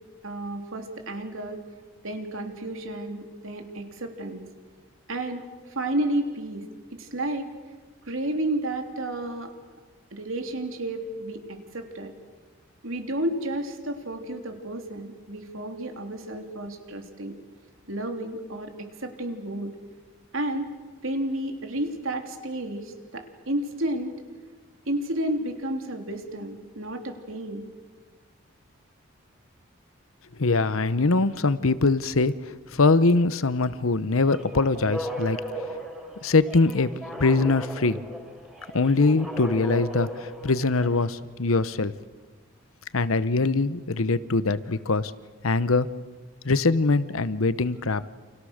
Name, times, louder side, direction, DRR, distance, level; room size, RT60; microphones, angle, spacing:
voice 1, 0.2-1.6 2.0-4.4 5.1-5.4 5.7-6.6 6.9-7.5 8.1-9.5 10.1-12.1 12.8-17.4 17.9-19.7 20.3-20.7 21.0-24.2 24.9-27.7, right 1 dB, 70° right, 4 dB, 3.4 m, -31 dB
voice 2, 30.4-35.4 36.2-36.9 37.2-38.0 38.7-41.9 42.9-45.1 45.4-45.9 46.4-48.1, left 3 dB, 75° left, 15 dB, 0.9 m, -22 dB
sound 1, 34.2-41.1, equal, ahead, 3.7 m, -36 dB
29.5 x 28.5 x 6.6 m, 1.4 s
head